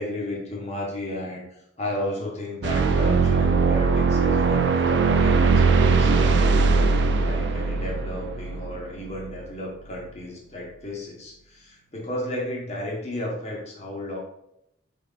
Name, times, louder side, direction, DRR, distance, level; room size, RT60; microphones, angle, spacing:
voice 1, 0.0-14.2, left 1 dB, 35° left, -2 dB, 1.0 m, -34 dB
sound 1, 2.6-9.3, right 4 dB, 65° right, 0.4 m, -20 dB
4.5 x 3.6 x 2.4 m, 0.80 s
head